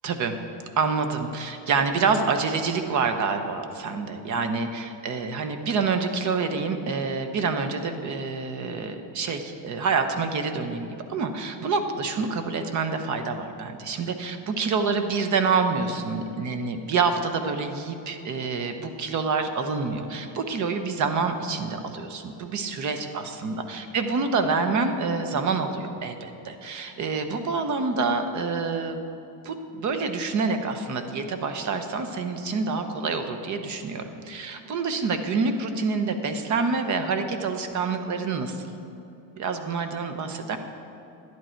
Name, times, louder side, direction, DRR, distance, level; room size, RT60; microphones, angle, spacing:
voice 1, 0.0-0.3 0.8-29.0 29.4-38.6 39.4-40.6, right 4 dB, 35° right, 8 dB, 0.9 m, -27 dB
11.5 x 11.0 x 4.5 m, 2.8 s
cardioid pair, 150°, 50 cm